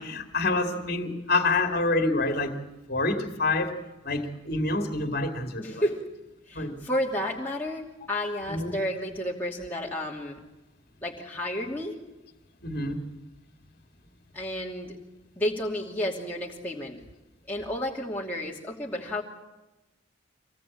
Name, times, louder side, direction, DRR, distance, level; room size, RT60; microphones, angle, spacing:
voice 1, 0.0-2.6 2.9-3.8 4.0-5.8 6.5-6.8 8.5-8.8 12.6-13.0, left 2 dB, 50° left, 5 dB, 2.3 m, -27 dB
voice 2, 5.6-6.0 6.5-10.4 11.0-12.0 14.3-15.0 15.4-17.0 17.5-19.2, left 1 dB, 10° left, -4 dB, 2.7 m, -31 dB
25.5 x 19.5 x 8.6 m, 1.0 s
head